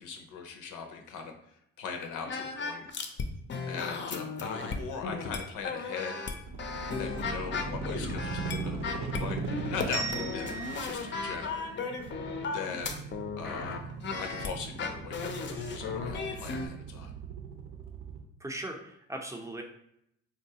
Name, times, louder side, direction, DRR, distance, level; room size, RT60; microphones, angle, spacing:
voice 1, 0.0-2.9 3.7-6.2 7.0-11.7 12.5-13.0 13.4-13.9 14.2-17.1, left 6 dB, 90° left, 4 dB, 0.5 m, -40 dB
sound 1, 2.3-3.2 3.5-16.7, left 4 dB, 40° left, 0.5 m, -36 dB
sound 2, 6.5-18.2, right 4 dB, 65° right, 0.7 m, -39 dB
sound 3, 9.9-12.7, right 4 dB, 85° right, 1.2 m, -40 dB
voice 2, 18.4-19.6, right 1 dB, 10° right, 3 dB, 0.5 m, -38 dB
3.8 x 2.2 x 2.7 m, 0.74 s
cardioid pair, 90°, 30 cm